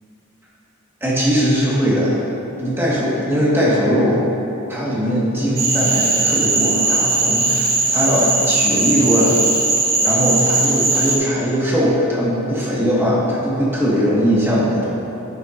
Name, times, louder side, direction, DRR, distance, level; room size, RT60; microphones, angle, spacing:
voice 1, 1.0-2.2 2.6-4.3 4.7-9.4 10.0-14.8, equal, 10° right, -7 dB, 1.8 m, -19 dB
Cricket / Frog, 5.6-11.2, right 3 dB, 45° right, 1.3 m, -18 dB
11.0 x 8.7 x 2.7 m, 3.0 s
head